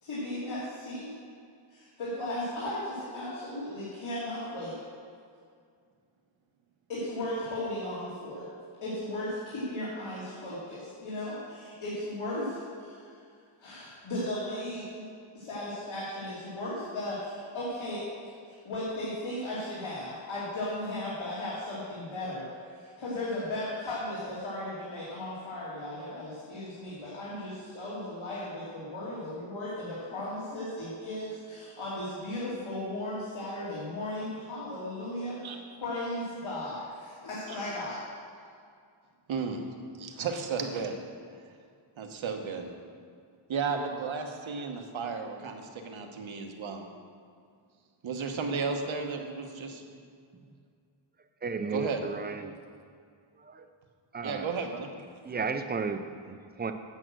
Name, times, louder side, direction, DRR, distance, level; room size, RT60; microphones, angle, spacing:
voice 1, 0.0-1.1 1.7-4.7 6.9-8.5 8.8-13.0 13.6-15.0 15.3-18.0 18.5-22.5 22.7-28.4 28.7-35.4 35.8-38.0, left 1 dB, 75° left, -9 dB, 2.8 m, -36 dB
voice 2, 39.3-39.6 40.0-41.0 42.0-42.7 43.5-46.9 48.0-49.8 51.7-52.1 54.2-54.9, right 5 dB, 70° right, 4 dB, 1.2 m, -33 dB
voice 3, 51.4-52.6 53.4-53.7 54.1-54.5 55.2-56.7, right 4 dB, 20° right, 8 dB, 0.5 m, -34 dB
8.9 x 7.6 x 6.2 m, 2.2 s
wide cardioid pair, 135°, 49 cm